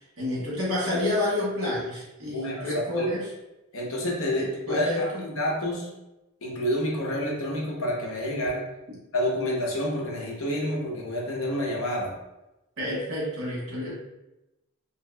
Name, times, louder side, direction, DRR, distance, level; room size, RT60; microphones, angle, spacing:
voice 1, 0.2-3.3 4.4-5.2 12.8-13.9, left 1 dB, 65° right, -6 dB, 1.1 m, -29 dB
voice 2, 2.3-3.1 3.7-5.9 6.4-8.6 9.1-12.1, equal, 70° left, -2 dB, 0.7 m, -28 dB
2.8 x 2.7 x 2.2 m, 0.97 s
head